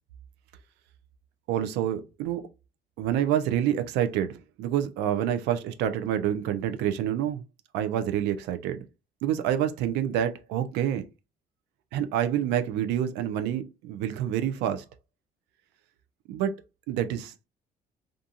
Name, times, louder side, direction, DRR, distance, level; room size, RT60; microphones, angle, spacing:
voice 1, 1.5-2.4 3.0-7.4 7.7-8.8 9.2-11.0 11.9-14.8 16.3-16.5 16.9-17.5, right 10 dB, 90° right, 0.4 m, -27 dB
2.5 x 2.3 x 2.7 m
cardioid pair, 110°, 17 cm